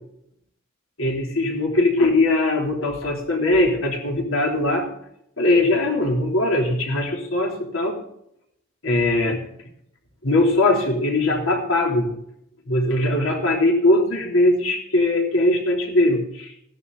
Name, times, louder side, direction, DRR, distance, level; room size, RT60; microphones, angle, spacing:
voice 1, 1.0-4.9 5.4-8.0 8.8-9.4 10.2-12.1 12.7-16.5, left 2 dB, 75° left, 0 dB, 3.4 m, -20 dB
15.5 x 11.0 x 3.9 m, 0.75 s
head